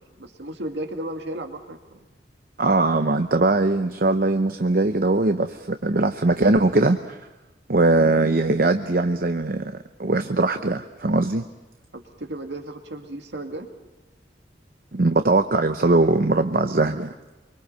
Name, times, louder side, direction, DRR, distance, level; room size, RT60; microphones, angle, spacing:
voice 1, 0.0-2.0 11.9-13.7, right 1 dB, 75° right, 4 dB, 2.2 m, -34 dB
voice 2, 2.6-7.2 7.7-11.5 14.9-17.1, right 2 dB, 55° right, 7 dB, 0.8 m, -21 dB
25.0 x 24.5 x 5.6 m, 1.1 s
head